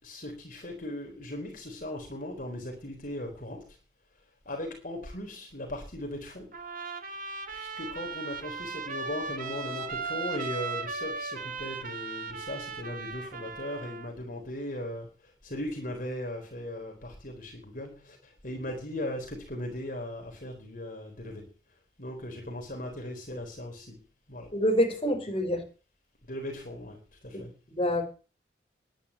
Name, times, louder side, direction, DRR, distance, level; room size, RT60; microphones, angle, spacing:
voice 1, 0.0-3.8 4.5-6.5 7.5-21.5 22.0-24.0 24.3-24.5 26.3-27.6, left 1 dB, 50° left, 1 dB, 4.1 m, -38 dB
Trumpet, 6.5-14.1, right 4 dB, 50° right, 1.9 m, -37 dB
voice 2, 24.5-25.6 27.3-27.4 27.8-28.0, equal, 30° left, 1 dB, 5.4 m, -26 dB
11.0 x 10.0 x 8.7 m, 0.36 s
head